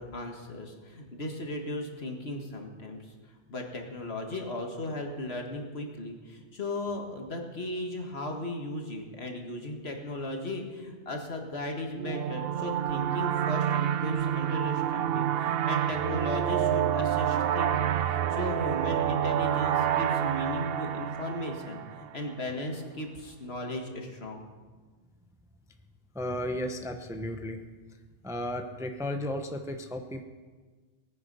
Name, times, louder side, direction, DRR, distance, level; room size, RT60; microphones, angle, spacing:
voice 1, 0.0-24.4, left 1 dB, 65° left, 3 dB, 2.0 m, -36 dB
sound 1, 12.0-22.3, right 10 dB, 65° right, 0.7 m, -28 dB
voice 2, 26.1-27.6 28.2-30.2, left 1 dB, 5° right, 5 dB, 0.7 m, -34 dB
19.5 x 9.5 x 5.5 m, 1.4 s
omnidirectional pair, 1.2 m